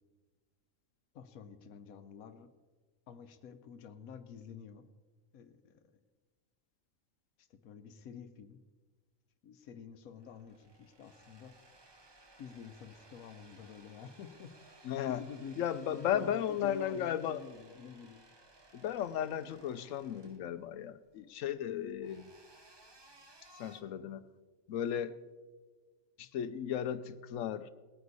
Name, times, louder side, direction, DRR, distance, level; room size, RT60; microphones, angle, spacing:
voice 1, 1.1-2.5 3.1-4.8 5.3-6.0 7.4-8.6 9.4-11.5 12.4-14.5 15.1-18.3, left 7 dB, 90° left, 1.2 m, -49 dB
sound 1, 10.1-23.8, right 1 dB, 20° right, 0.8 m, -60 dB
voice 2, 14.8-15.2 15.6-17.4 18.7-22.3 23.6-24.2 24.7-25.2 26.2-27.7, left 9 dB, 70° left, 1.0 m, -35 dB
20.0 x 9.5 x 4.0 m
omnidirectional pair, 1.5 m